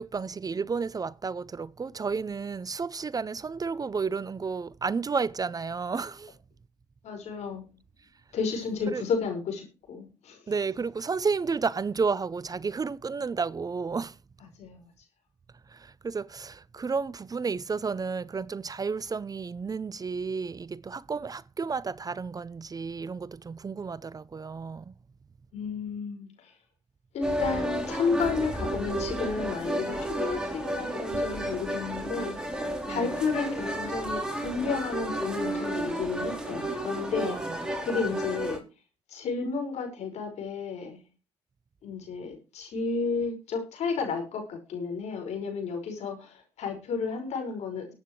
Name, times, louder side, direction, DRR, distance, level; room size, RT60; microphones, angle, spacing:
voice 1, 0.0-6.4 8.9-9.0 10.5-14.2 15.7-24.9 32.9-33.1 37.2-37.6 38.0-38.1, right 5 dB, 30° right, 0.6 m, -32 dB
voice 2, 7.0-7.7 8.3-10.5 14.6-14.8 25.5-26.5 27.1-38.6 39.1-41.0 41.8-47.9, left 5 dB, 70° left, 5.5 m, -32 dB
sound 1, 27.2-38.6, right 1 dB, 5° right, 3.9 m, -32 dB
21.5 x 9.0 x 3.2 m
supercardioid pair, 55°, 12 cm